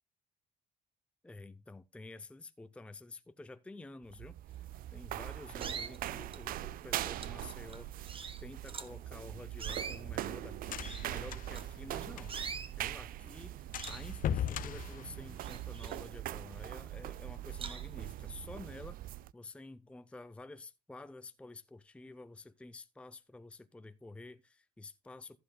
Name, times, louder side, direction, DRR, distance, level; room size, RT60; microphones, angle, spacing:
voice 1, 1.2-4.6 4.9-8.1 8.4-12.3 12.8-25.4, left 2 dB, 5° left, 0.6 m, -50 dB
sound 1, 4.0-19.3, right 14 dB, 60° right, 0.4 m, -42 dB
sound 2, 4.8-5.0 5.6-6.5 7.0-9.0 9.5-11.9 12.3-12.8 13.2-13.4 13.8-14.9 15.2-16.5 17.0-17.1 17.6-18.1, right 5 dB, 30° right, 1.2 m, -45 dB
sound 3, 9.2-12.6 12.9-13.0 13.3-13.4 13.7-15.8, left 11 dB, 55° left, 0.6 m, -39 dB
15.0 x 7.9 x 2.2 m
cardioid pair, 110°, 17 cm